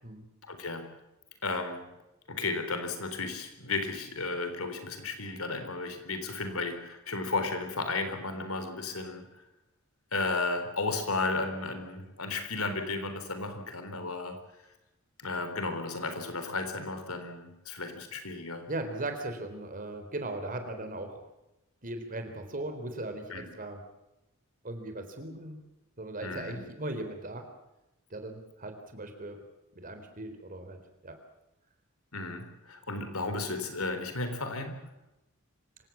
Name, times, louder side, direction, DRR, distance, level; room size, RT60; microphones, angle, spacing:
voice 1, 0.4-0.9 1.4-1.9 2.3-9.3 10.1-14.4 15.2-18.6 23.3-23.5 26.2-26.6 32.1-34.9, left 3 dB, 85° left, 8 dB, 3.9 m, -34 dB
voice 2, 18.7-21.2 21.8-23.8 24.6-25.6 26.0-27.4 28.1-29.4 29.7-31.2 33.4-33.5, right 2 dB, 40° right, 7 dB, 3.9 m, -38 dB
26.0 x 16.5 x 7.3 m, 0.94 s
head